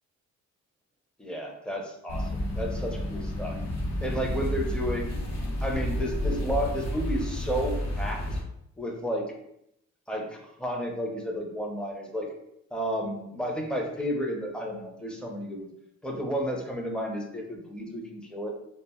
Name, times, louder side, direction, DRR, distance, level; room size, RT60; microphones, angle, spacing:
voice 1, 1.2-3.6 4.0-5.2 5.6-8.4 8.8-9.3 10.1-12.3 12.7-15.7 16.0-18.5, equal, 5° left, 0 dB, 0.5 m, -32 dB
sound 1, 2.1-8.4, left 1 dB, 60° left, 0.7 m, -31 dB
2.2 x 2.0 x 3.5 m, 0.78 s
cardioid pair, 90°, 30 cm